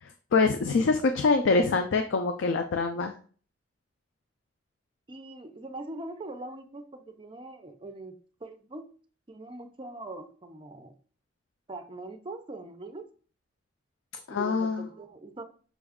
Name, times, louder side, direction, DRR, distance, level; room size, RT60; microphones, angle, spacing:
voice 1, 0.0-3.1 14.3-14.9, left 4 dB, 85° left, 7 dB, 0.4 m, -25 dB
voice 2, 5.1-8.1 8.4-8.9 9.3-10.9 11.7-13.0 14.3-15.4, right 2 dB, 25° right, 7 dB, 0.5 m, -42 dB
6.0 x 2.3 x 3.5 m, 0.42 s
head